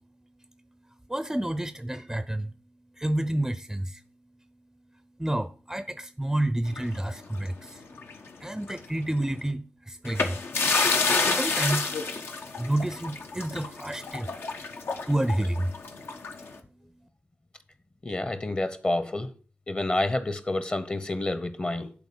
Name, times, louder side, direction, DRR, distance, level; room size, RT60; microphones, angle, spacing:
voice 1, 1.1-2.5 3.0-4.0 5.2-7.8 8.4-10.4 11.2-11.9 12.6-14.3 15.0-15.7, right 1 dB, 10° right, 0.5 m, -29 dB
sound 1, 6.7-8.3 8.6-8.8 10.0-16.5, left 4 dB, 75° left, 1.2 m, -29 dB
voice 2, 18.0-19.3 19.7-21.9, left 2 dB, 30° left, 0.9 m, -28 dB
11.0 x 4.1 x 7.1 m
wide cardioid pair, 80°, 4 cm